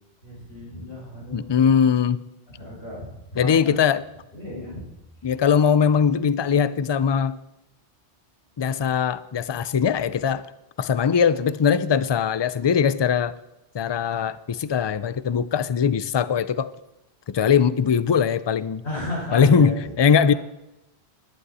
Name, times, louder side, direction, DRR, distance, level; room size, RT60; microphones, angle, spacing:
voice 1, 0.2-1.7 2.6-3.8 4.3-4.9 18.8-19.7, left 1 dB, 85° left, -5 dB, 5.8 m, -34 dB
voice 2, 1.3-2.2 3.4-4.0 5.2-7.4 8.6-10.5 10.8-13.3 13.7-16.7 17.3-18.8 19.3-20.3, left 7 dB, 45° left, 16 dB, 0.3 m, -21 dB
17.5 x 11.5 x 4.2 m, 0.93 s
omnidirectional pair, 1.1 m